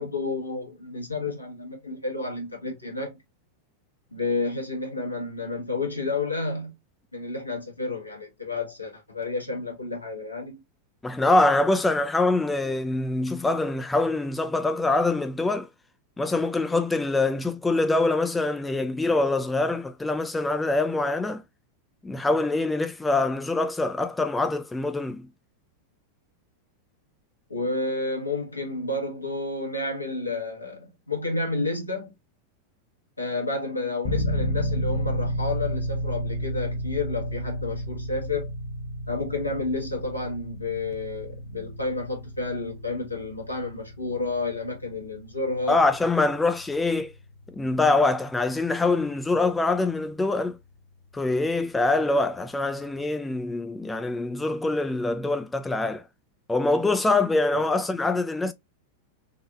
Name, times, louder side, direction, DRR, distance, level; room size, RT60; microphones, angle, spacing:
voice 1, 0.0-3.2 4.1-6.7 7.1-10.6 27.5-32.1 33.2-38.5 39.1-45.8 57.5-57.6, left 3 dB, 85° left, 1.2 m, -30 dB
voice 2, 11.0-15.7 16.2-21.4 22.0-25.3 45.7-47.1 47.6-50.6 51.1-56.0 56.5-58.5, left 2 dB, 10° left, 0.3 m, -24 dB
sound 1, 34.0-50.8, equal, 45° left, 0.6 m, -33 dB
4.1 x 2.6 x 2.3 m
figure-of-eight pair, 90°, 0 cm